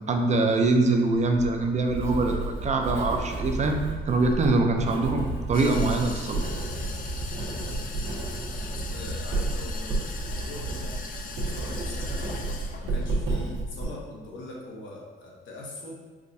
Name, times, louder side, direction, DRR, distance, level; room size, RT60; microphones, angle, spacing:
voice 1, 0.1-6.4, right 2 dB, 35° right, 4 dB, 0.4 m, -24 dB
Writing, 1.1-13.8, right 2 dB, 65° right, 1.0 m, -31 dB
sound 1, 5.5-13.2, left 4 dB, 45° left, 0.4 m, -40 dB
voice 2, 7.3-7.9 8.7-15.9, left 2 dB, 75° left, -2 dB, 0.8 m, -42 dB
4.7 x 2.2 x 2.6 m, 1.4 s
cardioid pair, 90°, 20 cm